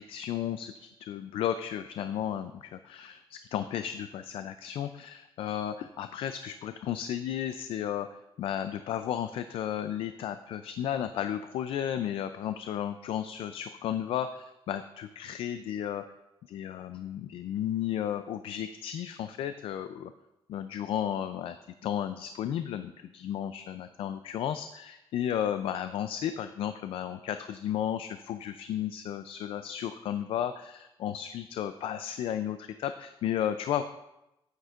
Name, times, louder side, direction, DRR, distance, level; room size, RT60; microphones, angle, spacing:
voice 1, 0.0-8.1 8.4-16.0 16.5-20.1 20.5-21.6 21.8-33.8, left 10 dB, 70° left, 10 dB, 0.4 m, -33 dB
9.3 x 9.1 x 2.5 m, 0.92 s
cardioid pair, 165°, 9 cm